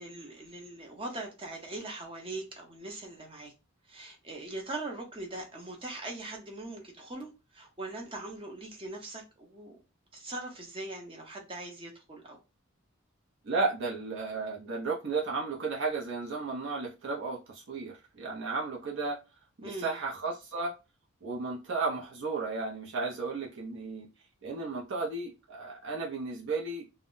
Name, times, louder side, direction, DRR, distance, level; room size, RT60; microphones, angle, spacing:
voice 1, 0.0-3.5 3.9-9.8 10.1-12.4 19.6-19.9, right 2 dB, 25° right, 0.7 m, -41 dB
voice 2, 13.4-19.2 19.6-20.8 21.2-24.1 24.4-26.9, right 3 dB, 60° right, 0.6 m, -34 dB
2.1 x 2.1 x 3.7 m
head